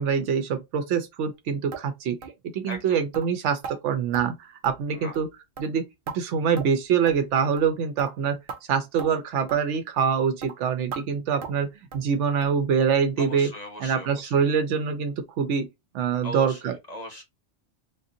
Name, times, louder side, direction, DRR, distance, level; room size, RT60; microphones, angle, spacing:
voice 1, 0.0-2.2 2.5-5.3 5.6-5.8 6.1-8.4 8.7-13.5 13.8-15.7 15.9-16.7, right 7 dB, 85° right, 0.9 m, -25 dB
sound 1, 1.7-1.9 2.2-2.4 2.7-2.8 3.1-3.3 3.6-3.8 4.1-4.3 4.6-4.9 5.1-5.3 5.6-6.2 6.6-6.8 7.1-7.2 7.6-7.7 8.0-8.1 8.5-8.6 9.0-9.1 9.5-9.6 10.0-10.1 10.4-10.5 10.9-11.0 11.4-11.6 11.9-12.1 12.4-12.6 12.9-13.0 13.4-13.5 13.9-14.0, right 5 dB, 55° right, 0.7 m, -38 dB
voice 2, 2.7-3.0 4.9-5.1 13.2-14.3 16.2-17.2, left 1 dB, 40° left, 0.8 m, -38 dB
3.6 x 2.6 x 2.6 m
omnidirectional pair, 1.2 m